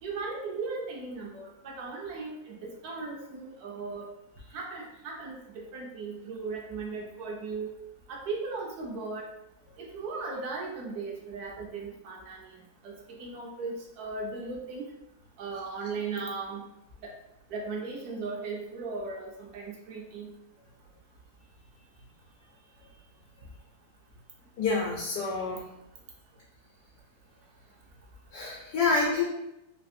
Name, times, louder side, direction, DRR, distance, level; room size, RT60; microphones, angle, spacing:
voice 1, 0.0-4.1 4.5-7.7 8.1-9.3 9.8-14.8 15.4-16.6 17.0-17.1 17.5-20.3, right 4 dB, 80° right, -1 dB, 1.2 m, -37 dB
voice 2, 24.6-25.6 28.3-29.2, left 4 dB, 75° left, -4 dB, 1.1 m, -27 dB
3.3 x 2.4 x 2.6 m, 0.82 s
omnidirectional pair, 1.6 m